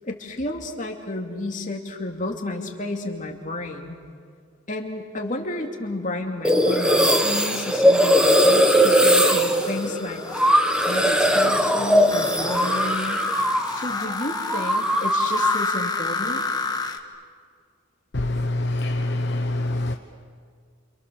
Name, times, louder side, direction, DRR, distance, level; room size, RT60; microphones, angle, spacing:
voice 1, 0.0-4.0 4.7-10.2 10.9-13.3 13.7-16.4, left 2 dB, 35° left, 2 dB, 2.7 m, -31 dB
sound 1, 6.4-13.9 14.1-15.6, equal, 5° right, 1.4 m, -19 dB
sound 2, 9.6-17.0, left 4 dB, 20° left, 1.4 m, -31 dB
voice 2, 18.1-19.9, left 2 dB, 55° left, 5 dB, 1.0 m, -25 dB
29.0 x 28.0 x 7.1 m, 2.1 s
head